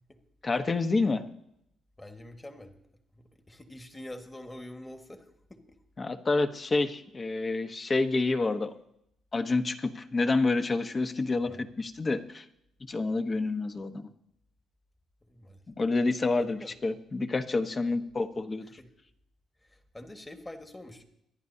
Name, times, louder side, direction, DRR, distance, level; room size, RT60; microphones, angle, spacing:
voice 1, 0.4-1.2 6.0-8.7 9.3-12.4 12.9-14.1 15.7-18.7, left 3 dB, 30° left, 8 dB, 1.0 m, -28 dB
voice 2, 2.0-2.8 3.1-5.6 11.4-11.6 15.3-15.6 16.4-16.8 17.8-18.0 18.8-18.9 19.7-21.0, left 1 dB, 15° left, 5 dB, 1.6 m, -46 dB
24.0 x 11.0 x 2.8 m, 0.77 s
cardioid pair, 90°, 0 cm